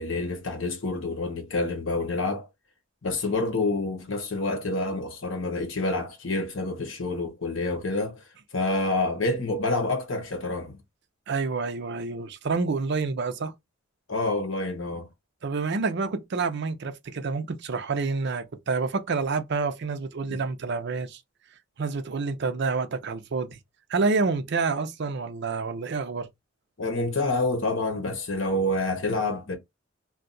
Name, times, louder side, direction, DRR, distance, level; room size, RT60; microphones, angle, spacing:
voice 1, 0.0-2.5 3.0-8.2 8.5-10.8 14.1-15.1 20.3-20.4 26.8-29.6, left 2 dB, 70° left, 1.0 m, -28 dB
voice 2, 11.3-13.5 15.4-21.2 21.8-23.6 23.9-26.3, right 4 dB, 60° right, 0.5 m, -28 dB
2.7 x 2.3 x 3.8 m
head